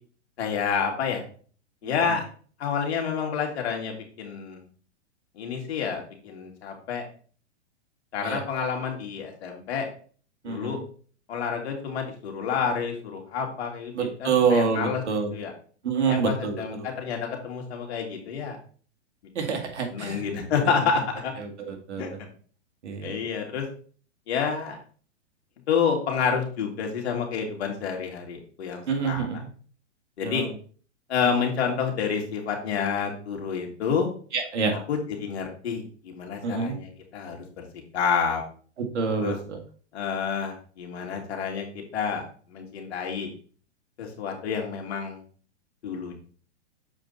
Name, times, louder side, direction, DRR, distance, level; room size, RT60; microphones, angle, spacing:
voice 1, 0.4-1.2 1.8-2.3 2.6-4.6 5.4-7.0 8.1-9.9 10.5-10.8 11.3-15.0 15.3-15.5 16.1-18.6 19.4-19.6 19.9-21.3 22.0-22.3 23.0-23.7 24.3-24.8 25.7-29.3 30.2-30.4 31.1-34.1 34.7-37.7 37.9-38.4 39.2-39.4 39.9-42.2 42.5-43.3 44.0-45.2 45.8-46.1, left 6 dB, 65° left, 1 dB, 2.5 m, -29 dB
voice 2, 10.4-10.8 13.9-15.3 15.8-16.9 19.4-20.2 21.4-22.1 22.8-23.2 28.9-29.5 30.2-30.5 34.3-34.7 36.4-36.7 38.8-39.6, right 5 dB, 75° right, 3 dB, 2.1 m, -27 dB
7.2 x 4.9 x 4.0 m, 0.43 s
hypercardioid pair, 130°, 34 cm